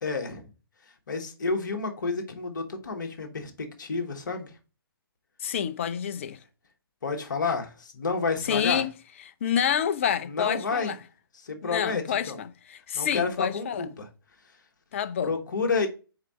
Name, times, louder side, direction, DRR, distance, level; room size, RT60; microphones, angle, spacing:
voice 1, 0.0-0.5 0.8-4.6 7.0-8.8 10.2-10.9 11.3-12.4 12.9-14.1 15.2-15.9, left 4 dB, 50° left, 1.4 m, -30 dB
voice 2, 5.4-6.4 8.5-8.9 9.4-11.0 11.6-13.8 14.9-15.3, left 8 dB, 35° left, 0.5 m, -28 dB
4.9 x 4.7 x 4.4 m
figure-of-eight pair, 135°, 13 cm